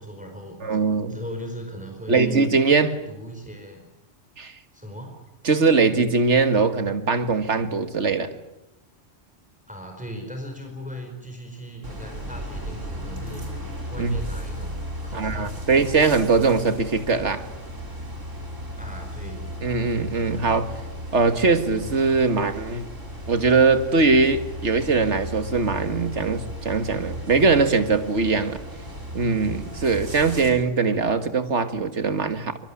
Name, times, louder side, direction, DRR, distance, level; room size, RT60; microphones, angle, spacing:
voice 1, 0.0-0.8 1.1-2.4 3.1-3.8 4.7-5.2 9.7-15.7 18.8-19.5, equal, 5° right, 4.7 m, -38 dB
voice 2, 0.6-1.2 2.1-3.0 4.4-4.5 5.4-8.4 14.0-14.2 15.1-17.5 19.6-20.7 21.1-22.9 23.3-28.6 29.1-32.7, right 4 dB, 65° right, 2.1 m, -21 dB
sound 1, 11.8-30.5, equal, 85° right, 6.0 m, -35 dB
23.5 x 23.5 x 9.9 m
omnidirectional pair, 1.3 m